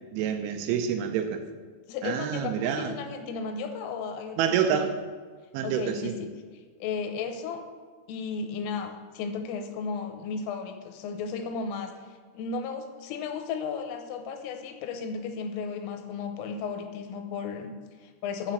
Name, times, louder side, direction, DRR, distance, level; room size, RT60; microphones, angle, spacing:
voice 1, 0.1-1.4 2.0-2.9 4.4-4.9 5.5-6.1, right 8 dB, 85° right, 7 dB, 3.0 m, -27 dB
voice 2, 1.9-4.8 5.6-6.3 6.8-7.6 8.1-18.5, left 5 dB, 85° left, 6 dB, 3.4 m, -34 dB
7.8 x 7.1 x 7.7 m, 1.5 s
omnidirectional pair, 5.9 m